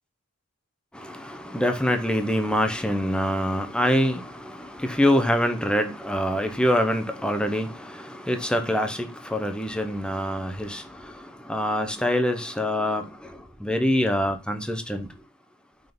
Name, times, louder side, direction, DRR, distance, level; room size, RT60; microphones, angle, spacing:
voice 1, 0.9-15.1, equal, 5° left, 0.8 m, -25 dB
5.8 x 3.8 x 5.2 m
head